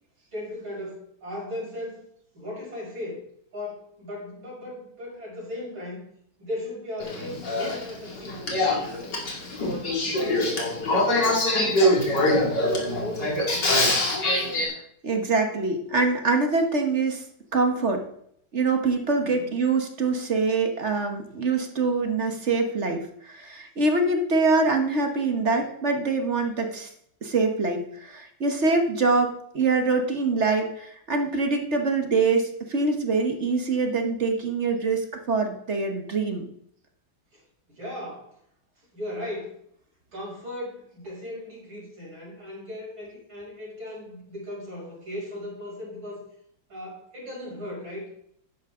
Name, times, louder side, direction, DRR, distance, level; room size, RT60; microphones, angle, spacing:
voice 1, 0.3-2.0 2.3-3.2 3.5-6.0 6.4-8.4 8.9-9.2 9.6-13.9 19.2-19.5 37.3-37.4 37.7-38.3 38.9-39.6 40.1-46.2 46.7-48.1, left 1 dB, 75° right, -5 dB, 6.8 m, -37 dB
Male speech man speaking / Female speech woman speaking / Conversation, 7.0-14.6, left 1 dB, 60° left, 3.3 m, -24 dB
voice 2, 15.0-17.2 17.5-18.0 18.5-26.9 27.2-36.5, right 3 dB, 40° right, 4 dB, 1.4 m, -24 dB
12.5 x 10.5 x 3.8 m, 0.69 s
omnidirectional pair, 2.2 m